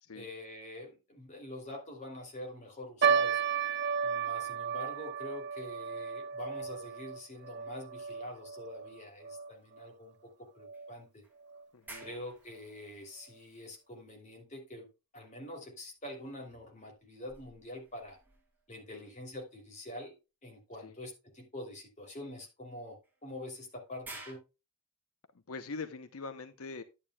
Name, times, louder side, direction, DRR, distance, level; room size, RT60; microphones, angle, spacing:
voice 1, 0.1-3.4 4.0-11.2 12.0-14.9 15.1-18.2 18.7-20.1 20.4-24.4, left 1 dB, 35° left, 1 dB, 2.9 m, -45 dB
sound 1, 3.0-9.5 9.8-9.9 10.6-10.9 11.5-11.6 12.0-12.1, right 7 dB, 55° right, 0.8 m, -33 dB
sound 2, 9.6-9.7 10.7-14.2 16.0-19.0 20.8-20.9 23.0-24.3, right 2 dB, 10° right, 2.7 m, -55 dB
voice 2, 11.7-12.1 18.9-19.1 20.8-20.9 25.5-26.8, left 4 dB, 90° left, 10 dB, 0.8 m, -43 dB
10.5 x 9.0 x 2.3 m, 0.27 s
head